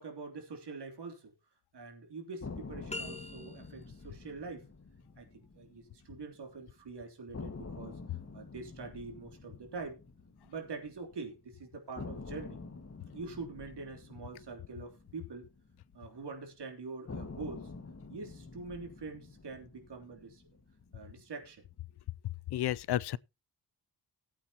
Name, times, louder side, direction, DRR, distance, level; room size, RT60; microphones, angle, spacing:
voice 1, 0.0-1.3 1.7-4.7 5.2-5.3 5.5-10.0 10.4-12.6 13.1-15.5 15.9-17.7 18.1-20.4 20.9-21.6, right 4 dB, 75° right, 3.3 m, -44 dB
sound 1, 2.4-6.5 6.8-6.9 7.3-11.4 12.0-16.3 17.1-21.4, left 4 dB, 35° left, 1.8 m, -48 dB
sound 2, 2.9-4.0, left 2 dB, 15° left, 1.4 m, -43 dB
voice 2, 22.5-23.2, left 12 dB, 70° left, 0.5 m, -31 dB
19.0 x 8.6 x 2.9 m
wide cardioid pair, 130°, 41 cm